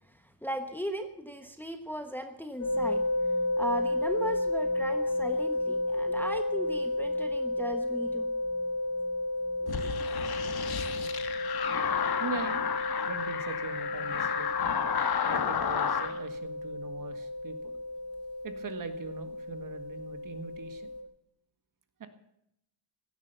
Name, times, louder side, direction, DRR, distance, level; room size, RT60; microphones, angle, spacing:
voice 1, 0.1-3.0 3.6-8.3 9.6-9.9, equal, 5° left, 6 dB, 1.2 m, -37 dB
sound 1, 2.6-21.0, left 2 dB, 35° left, 4.1 m, -32 dB
sound 2, 9.7-16.1, left 7 dB, 50° left, 1.6 m, -31 dB
voice 2, 12.2-14.5 15.3-17.8 18.4-20.9 22.0-22.1, right 4 dB, 40° right, 9 dB, 1.7 m, -41 dB
16.5 x 11.5 x 6.8 m, 0.78 s
cardioid pair, 140°, 48 cm